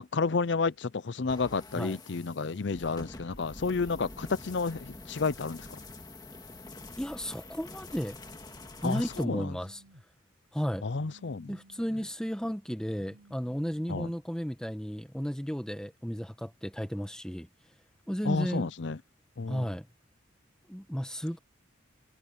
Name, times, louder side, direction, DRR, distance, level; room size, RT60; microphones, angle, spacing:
voice 1, 0.0-5.8 8.8-9.5 10.8-11.6 13.9-14.1 18.2-19.0 19.4-19.7, left 4 dB, 60° left, 0.6 m, -31 dB
sound 1, 1.3-9.3, left 2 dB, 20° left, 1.9 m, -47 dB
voice 2, 7.0-8.2 8.8-9.8 10.5-10.9 11.5-17.5 18.1-18.7 19.5-19.9 20.7-21.4, equal, 5° left, 1.1 m, -33 dB
Telephone, 9.0-10.0 11.0-12.0 13.0-14.0, right 1 dB, 55° right, 3.3 m, -57 dB
head